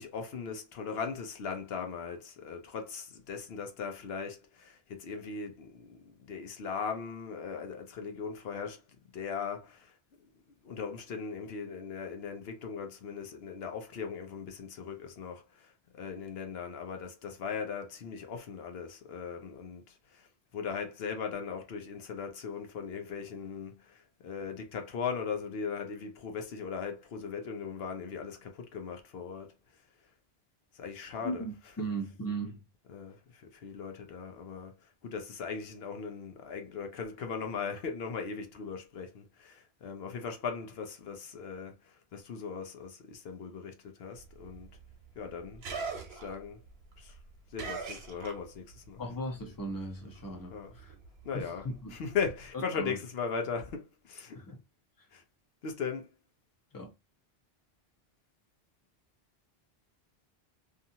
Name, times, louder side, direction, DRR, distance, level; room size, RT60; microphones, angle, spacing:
voice 1, 0.0-8.8 9.1-9.9 10.6-20.3 20.5-29.5 30.7-31.9 32.9-34.8 35.0-44.7 45.2-45.6 46.1-46.6 47.0-47.2 47.5-49.1 50.5-50.8 51.2-54.4 55.1-55.2 55.6-56.1, left 6 dB, 75° left, 0.9 m, -39 dB
voice 2, 31.2-32.6 49.0-50.9 51.3-52.0 52.7-53.0 54.3-54.6 55.0-55.1 56.7-56.9, right 2 dB, 20° left, 0.8 m, -38 dB
sound 1, 44.2-48.9 49.1-52.5, right 4 dB, 85° right, 1.0 m, -43 dB
2.7 x 2.4 x 2.7 m
omnidirectional pair, 1.0 m